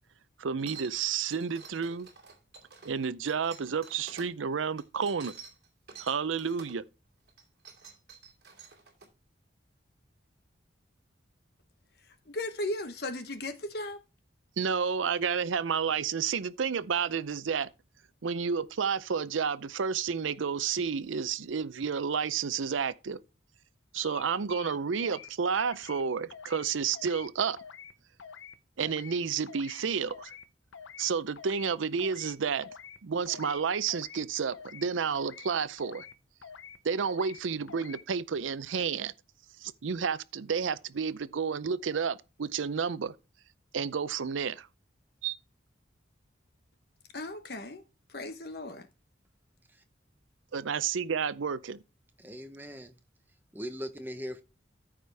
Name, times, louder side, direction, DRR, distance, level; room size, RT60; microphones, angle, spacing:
voice 1, 0.4-2.1 2.8-5.3 6.0-6.8 14.6-17.7 18.2-23.2 23.9-27.6 28.8-30.3 31.0-32.7 33.0-36.1 36.8-39.1 39.6-43.1 43.7-44.7 45.2-45.4 50.5-51.8, right 6 dB, 90° right, 0.5 m, -31 dB
sound 1, 0.6-4.3 4.8-6.8 7.3-9.1, right 7 dB, 55° right, 2.7 m, -49 dB
voice 2, 12.3-14.0 47.1-48.9, left 1 dB, 55° left, 1.1 m, -36 dB
sound 2, 24.0-24.2 24.5-25.3 25.6-26.0 26.3-26.7 26.9-27.3 27.6-27.9 28.2-28.6 28.8-29.2 29.5-29.8 30.1-30.5 30.7-31.1 31.4-31.7 32.0-32.4 32.6-33.0 33.3-33.6 33.9-34.2 34.5-34.9 35.2-35.5 35.8-36.1 36.4-36.8 37.0-37.4 37.7-38.0, left 7 dB, 90° left, 0.7 m, -47 dB
voice 3, 52.2-53.0 53.5-54.4, equal, 10° right, 0.8 m, -39 dB
13.5 x 5.0 x 3.4 m
head